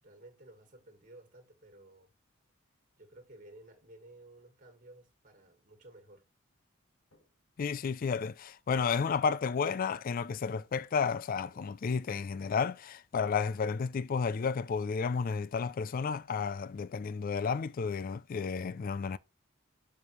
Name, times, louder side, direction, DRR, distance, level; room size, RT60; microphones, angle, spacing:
voice 1, 0.0-2.1 3.0-6.3, right 1 dB, 40° right, 1.9 m, -55 dB
Walk footsteps, 6.9-7.5 8.0-9.0 9.5-10.1 10.5-11.1 11.4-12.0 12.3-14.6, left 2 dB, 65° left, 1.8 m, -64 dB
voice 2, 7.6-19.2, left 5 dB, 40° left, 0.3 m, -32 dB
7.2 x 4.7 x 3.1 m
head